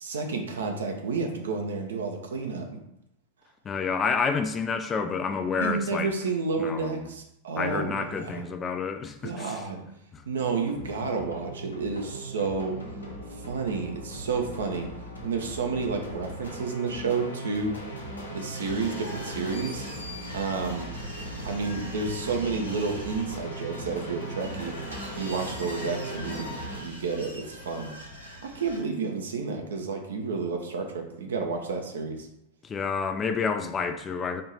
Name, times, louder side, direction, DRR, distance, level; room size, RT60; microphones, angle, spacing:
voice 1, 0.0-2.7 5.6-8.4 9.2-9.8 10.3-12.8 13.3-14.9 15.2-17.7 18.3-19.9 20.3-20.9 21.4-24.7 25.1-26.5 26.8-27.9 28.4-32.3, right 4 dB, 65° right, 3 dB, 0.6 m, -30 dB
voice 2, 3.6-6.1 6.6-7.1 7.6-9.6 10.1-10.2 32.6-34.4, left 5 dB, 20° left, 8 dB, 0.3 m, -29 dB
sound 1, 10.4-26.8, right 1 dB, 80° left, 0.8 m, -39 dB
sound 2, 18.5-28.8, equal, 80° right, 1.3 m, -42 dB
4.2 x 2.6 x 3.2 m, 0.79 s
figure-of-eight pair, 90°, 0 cm